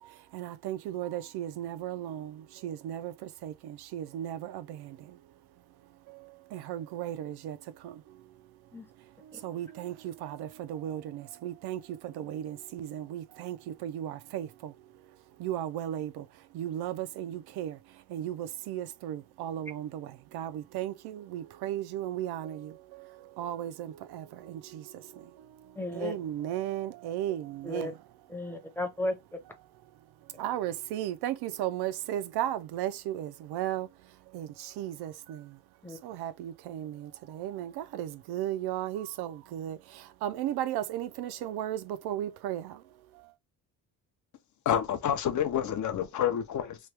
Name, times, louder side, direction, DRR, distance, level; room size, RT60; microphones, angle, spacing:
voice 1, 0.0-5.2 6.1-8.3 9.2-14.9 15.4-27.9 30.3-35.6 36.0-42.8 43.1-43.3, right 12 dB, 70° right, 0.5 m, -36 dB
voice 2, 25.7-26.1 27.6-27.9 28.3-29.4 35.8-36.0, left 1 dB, 5° left, 0.7 m, -34 dB
voice 3, 44.7-46.8, left 9 dB, 45° left, 0.6 m, -28 dB
3.1 x 2.2 x 3.2 m
cardioid pair, 120°, 41 cm